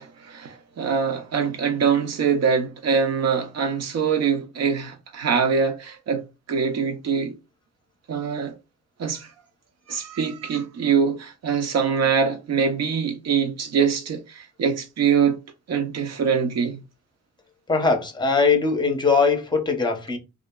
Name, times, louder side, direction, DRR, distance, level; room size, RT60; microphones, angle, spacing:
voice 1, 0.0-6.2 6.5-7.3 8.1-8.5 9.0-9.3 9.9-15.4 15.7-16.8, right 6 dB, 60° right, 0.8 m, -23 dB
voice 2, 17.7-20.2, left 4 dB, 15° left, 0.8 m, -21 dB
2.7 x 2.4 x 2.2 m
cardioid pair, 90°, 30 cm